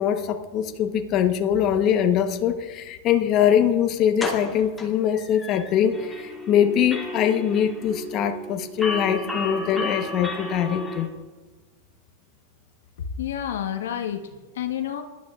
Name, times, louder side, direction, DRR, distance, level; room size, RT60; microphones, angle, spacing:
voice 1, 0.0-11.1, left 9 dB, 40° left, 6 dB, 1.0 m, -22 dB
sound 1, 3.5-3.6 4.2-6.0 6.3-6.4 6.8-6.9 7.2-7.3, left 2 dB, 10° left, 2.2 m, -35 dB
sound 2, 5.9-11.0, left 2 dB, 5° right, 4.1 m, -33 dB
voice 2, 13.2-15.0, left 10 dB, 85° left, 6 dB, 1.1 m, -29 dB
20.0 x 11.5 x 2.4 m, 1.3 s
hypercardioid pair, 125°, 0 cm